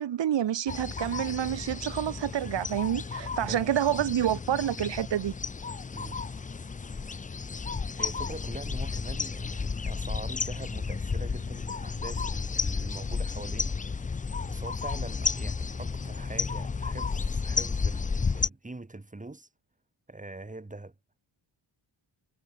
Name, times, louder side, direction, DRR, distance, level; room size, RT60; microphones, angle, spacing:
voice 1, 0.0-5.3, right 10 dB, 60° right, 1.0 m, -28 dB
sound 1, 0.7-18.5, left 5 dB, 20° left, 0.3 m, -32 dB
voice 2, 3.5-4.1 5.9-6.3 7.5-19.5 20.1-20.9, right 2 dB, 15° right, 6.1 m, -43 dB
wide cardioid pair, 160°, 49 cm